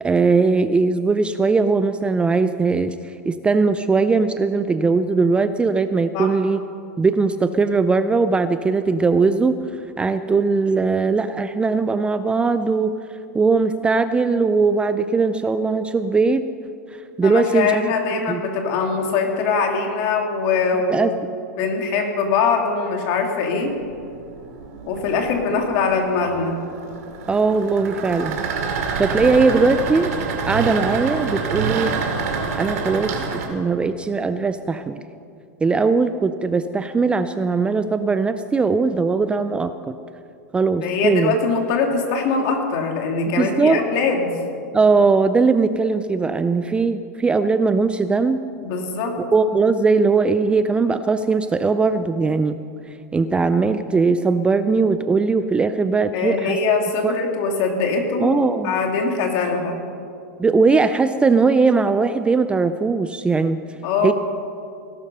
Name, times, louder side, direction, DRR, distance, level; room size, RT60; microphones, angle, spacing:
voice 1, 0.0-6.6 7.0-9.6 10.0-13.0 13.3-16.4 17.2-17.9 18.3-18.4 20.9-21.1 27.3-28.4 29.0-30.1 30.5-32.0 32.5-35.0 35.6-39.9 40.5-41.3 43.4-43.8 44.7-48.4 49.3-52.6 53.1-56.6 57.0-57.1 58.2-58.7 60.4-63.6 64.0-64.1, right 4 dB, 10° right, 11 dB, 0.4 m, -19 dB
voice 2, 17.2-21.1 21.6-23.8 24.9-26.6 29.3-29.4 40.8-44.3 48.6-49.2 56.1-58.4 58.6-59.7 63.8-64.1, left 4 dB, 50° left, 2 dB, 2.7 m, -22 dB
sound 1, 23.7-33.5, right 5 dB, 65° right, 2.6 m, -27 dB
18.0 x 12.0 x 5.5 m, 2.5 s
hypercardioid pair, 125°, 9 cm